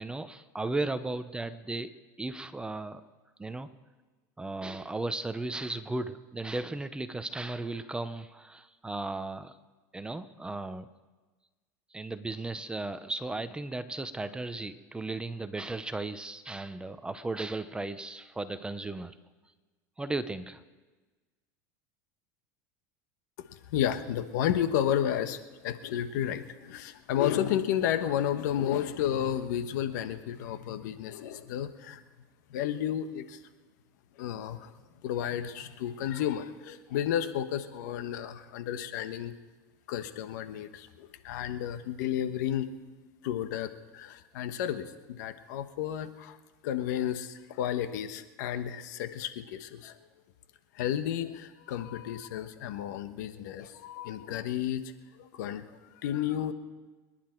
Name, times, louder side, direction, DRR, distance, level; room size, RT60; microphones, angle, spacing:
voice 1, 0.0-1.9 2.2-3.0 3.4-3.7 4.4-9.5 9.9-10.9 11.9-19.2 20.0-20.6, right 2 dB, 10° right, 12 dB, 0.8 m, -35 dB
voice 2, 23.7-32.0 32.5-33.4 34.2-34.7 35.0-39.3 39.9-42.7 43.2-46.4 46.6-50.0 50.7-54.8 55.2-55.6 56.0-56.5, left 10 dB, 80° left, 10 dB, 1.2 m, -32 dB
25.0 x 10.5 x 4.6 m, 1.3 s
supercardioid pair, 120°, 10 cm